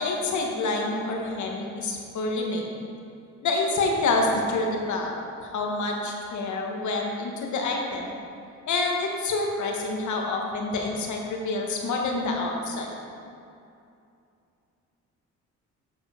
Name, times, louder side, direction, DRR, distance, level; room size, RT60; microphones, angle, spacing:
voice 1, 0.0-2.7 3.4-5.1 5.4-8.1 8.7-13.0, left 3 dB, 70° left, 0 dB, 1.6 m, -27 dB
7.8 x 7.2 x 5.2 m, 2.6 s
cardioid pair, 90°, 30 cm